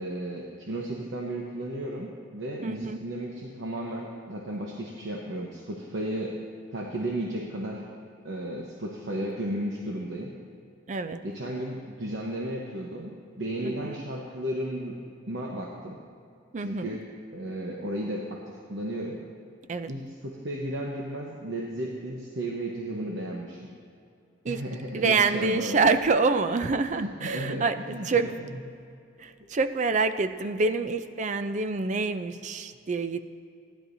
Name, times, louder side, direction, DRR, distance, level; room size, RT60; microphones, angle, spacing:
voice 1, 0.0-6.4 6.7-7.9 8.2-10.3 11.2-15.0 15.3-16.0 16.6-17.1 17.3-18.4 18.7-19.2 19.9-23.7 24.5-25.9 26.9-28.3, right 1 dB, 75° right, -1 dB, 1.0 m, -34 dB
voice 2, 2.6-3.0 10.9-11.2 13.6-14.0 16.5-17.0 19.7-19.9 24.4-24.6 24.9-28.4 29.2-33.2, right 4 dB, 40° right, 10 dB, 0.4 m, -26 dB
15.5 x 10.5 x 2.7 m, 2.5 s
head